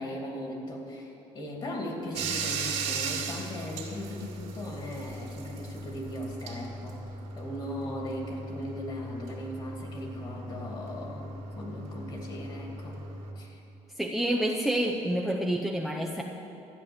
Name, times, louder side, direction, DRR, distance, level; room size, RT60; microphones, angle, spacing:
voice 1, 0.0-7.0 7.4-13.0 13.3-13.6, left 1 dB, 40° left, 0 dB, 2.6 m, -38 dB
Bathtub (filling or washing), 2.1-13.3, right 4 dB, 65° right, 2.2 m, -38 dB
voice 2, 14.0-16.2, right 1 dB, ahead, 1 dB, 0.6 m, -28 dB
13.0 x 9.5 x 7.1 m, 2.9 s
cardioid pair, 150°, 12 cm